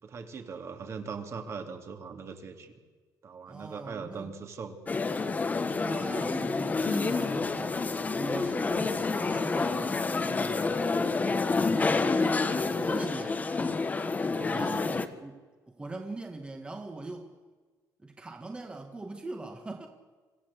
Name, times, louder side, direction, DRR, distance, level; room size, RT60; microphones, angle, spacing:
voice 1, 0.0-2.7 3.2-4.8 14.3-14.7, right 5 dB, 45° right, 2.7 m, -40 dB
voice 2, 3.5-4.3 5.7-7.8 8.1-10.9 11.7-13.4 14.5-17.3 18.0-19.9, right 2 dB, 15° right, 1.7 m, -40 dB
sound 1, 4.9-15.1, left 4 dB, 25° left, 1.4 m, -28 dB
26.0 x 15.0 x 8.3 m
cardioid pair, 135°, 7 cm